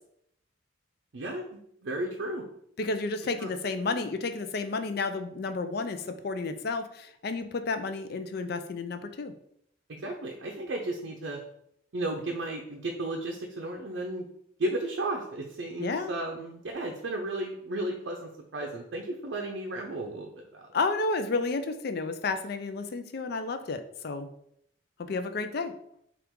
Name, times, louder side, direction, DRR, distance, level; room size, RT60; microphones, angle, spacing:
voice 1, 1.1-2.4 3.4-3.5 9.9-11.4 11.9-14.3 14.6-20.7, right 1 dB, 65° right, 1 dB, 0.5 m, -34 dB
voice 2, 2.8-9.3 15.8-16.1 20.7-24.3 25.0-25.7, left 3 dB, 55° left, 9 dB, 0.4 m, -31 dB
5.8 x 2.4 x 3.6 m, 0.71 s
head